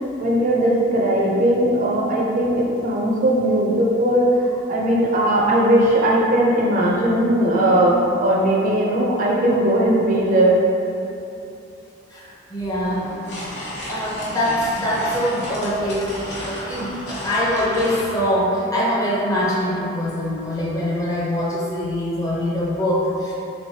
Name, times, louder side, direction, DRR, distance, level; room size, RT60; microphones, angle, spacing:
voice 1, 0.2-10.6, right 1 dB, 40° right, -3 dB, 0.4 m, -18 dB
voice 2, 12.1-13.1 13.9-16.1 16.4-23.3, equal, 15° left, -6 dB, 0.5 m, -23 dB
sound 1, 12.8-18.1, equal, 55° left, 1.0 m, -33 dB
3.8 x 3.1 x 2.7 m, 2.8 s
head